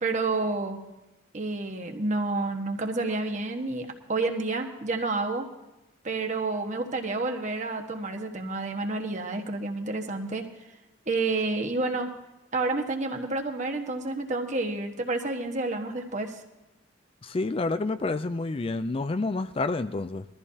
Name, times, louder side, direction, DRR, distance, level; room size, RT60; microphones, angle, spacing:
voice 1, 0.0-0.8 1.3-5.5 6.0-10.5 11.1-12.1 12.5-16.4, right 3 dB, 40° right, 1.4 m, -29 dB
voice 2, 17.2-20.2, left 3 dB, 30° left, 0.4 m, -29 dB
21.0 x 14.0 x 2.8 m
head